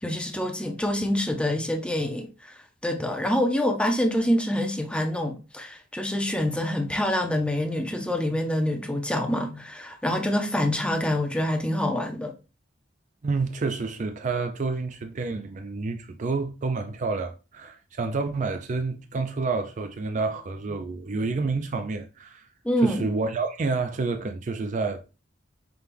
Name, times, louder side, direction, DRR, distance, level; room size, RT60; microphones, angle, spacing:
voice 1, 0.0-12.3 22.6-23.0, left 1 dB, 5° left, 0.5 m, -26 dB
voice 2, 13.2-22.5 22.8-25.1, right 3 dB, 40° right, 0.4 m, -29 dB
5.9 x 2.2 x 3.4 m
head